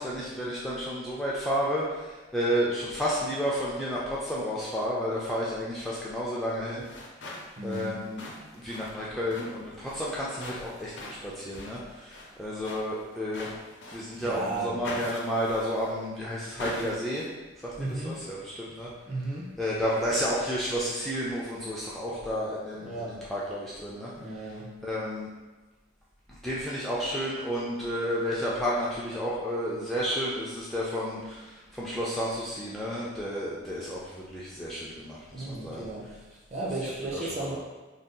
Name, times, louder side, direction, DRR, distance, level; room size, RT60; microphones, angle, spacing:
voice 1, 0.0-6.9 7.6-8.2 8.5-10.9 11.2-13.5 13.9-17.3 17.6-18.9 19.6-24.1 24.8-25.3 26.3-35.9 37.1-37.6, equal, ahead, -7 dB, 0.3 m, -31 dB
sound 1, 6.7-14.3 14.8-16.1 16.6-17.3, left 2 dB, 65° left, 0.5 m, -43 dB
voice 2, 7.6-8.0 14.2-14.8 17.8-18.2 19.1-19.5 22.8-23.2 24.2-24.7 35.3-36.2 36.5-37.6, right 2 dB, 35° right, -4 dB, 0.6 m, -34 dB
2.6 x 2.3 x 3.6 m, 1.2 s
head